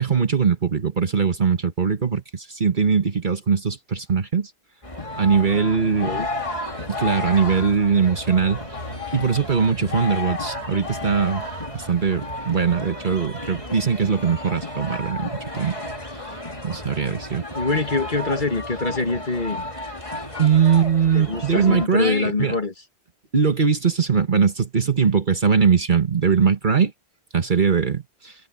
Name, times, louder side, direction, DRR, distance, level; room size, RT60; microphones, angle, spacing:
voice 1, 0.0-4.5 5.2-6.2 6.9-8.6 9.1-11.4 11.7-15.8 16.1-16.4 16.6-17.4 20.4-22.5 23.3-26.9 27.3-28.3, right 6 dB, 45° right, 1.5 m, -21 dB
sound 1, 4.8-21.9, left 2 dB, 30° left, 3.5 m, -33 dB
sound 2, 6.7-12.4, left 1 dB, 70° left, 5.7 m, -43 dB
voice 2, 17.6-19.6 21.1-22.7, left 3 dB, 45° left, 2.3 m, -24 dB
omnidirectional pair, 1.2 m